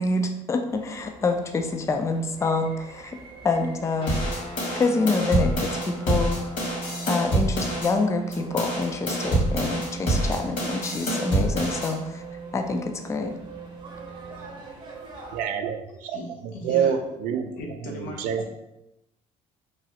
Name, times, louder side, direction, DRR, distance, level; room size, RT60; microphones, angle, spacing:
voice 1, 0.0-3.2 3.4-4.2 4.8-6.4 7.1-12.2 12.5-13.3, left 3 dB, 20° left, 5 dB, 0.3 m, -26 dB
sound 1, 0.7-15.5, right 4 dB, 35° right, 0.8 m, -45 dB
sound 2, 4.0-14.7, right 2 dB, 40° left, 0.7 m, -38 dB
sound 3, 4.1-7.9 8.3-11.9, right 1 dB, 55° left, 1.5 m, -26 dB
voice 2, 15.3-16.2 16.4-17.5 17.8-18.5, right 8 dB, 70° right, 6 dB, 0.4 m, -27 dB
voice 3, 16.0-17.0 17.5-18.5, equal, 85° left, 0 dB, 0.7 m, -37 dB
3.0 x 2.3 x 2.8 m, 0.91 s
supercardioid pair, 90°, 14 cm